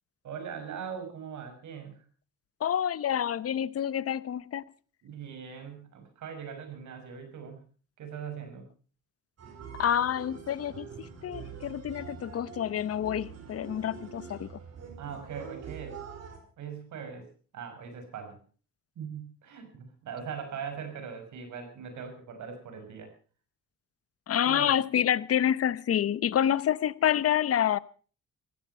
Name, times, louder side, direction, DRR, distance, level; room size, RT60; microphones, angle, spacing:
voice 1, 0.2-2.0 5.0-7.6 8.0-8.7 15.0-16.0 16.6-17.3 17.5-18.4 19.0-23.1 24.4-24.7, right 7 dB, 75° right, 5.9 m, -40 dB
voice 2, 2.6-4.6 9.8-14.5 24.3-27.8, left 10 dB, 50° left, 0.9 m, -28 dB
sound 1, 9.4-16.4, right 7 dB, 55° right, 4.8 m, -45 dB
15.5 x 15.5 x 5.6 m
cardioid pair, 90°, 30 cm